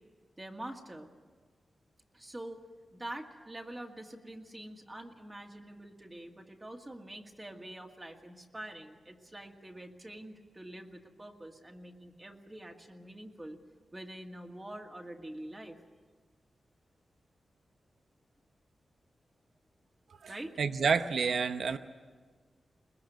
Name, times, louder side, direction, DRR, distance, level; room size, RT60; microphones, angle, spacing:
voice 1, 0.4-1.1 2.1-2.6 2.9-13.6 13.9-15.8 20.3-20.6, right 1 dB, 20° right, 2 dB, 2.1 m, -45 dB
voice 2, 20.2-21.8, right 5 dB, 80° right, 9 dB, 0.9 m, -29 dB
22.0 x 21.0 x 9.3 m, 1.5 s
wide cardioid pair, 90°, 0 cm